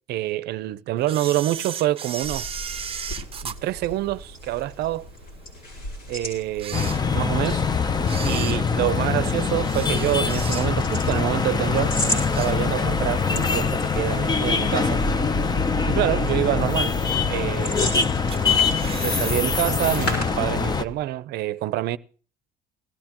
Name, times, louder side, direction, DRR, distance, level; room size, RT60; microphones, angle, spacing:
voice 1, 0.1-2.5 3.4-5.1 6.1-7.6 8.2-15.0 15.9-16.9 17.3-17.9 18.9-22.0, right 15 dB, 75° right, 0.6 m, -26 dB
Camera, 1.0-4.6 5.1-5.2 5.9-6.0 6.5-7.5 8.0-11.0 11.4-11.6 12.0-13.0 13.4-13.5 14.4-14.5 15.1-15.5 15.9-16.0 16.2-16.3 16.5-16.6 17.3-17.9 18.3-19.4 19.7-19.8 20.1-20.2, right 7 dB, 35° right, 0.6 m, -36 dB
sound 1, 2.1-21.0, left 1 dB, 85° left, 6.7 m, -37 dB
sound 2, 6.7-20.8, left 5 dB, 25° left, 0.7 m, -23 dB
19.5 x 14.0 x 2.9 m
cardioid pair, 110°, 17 cm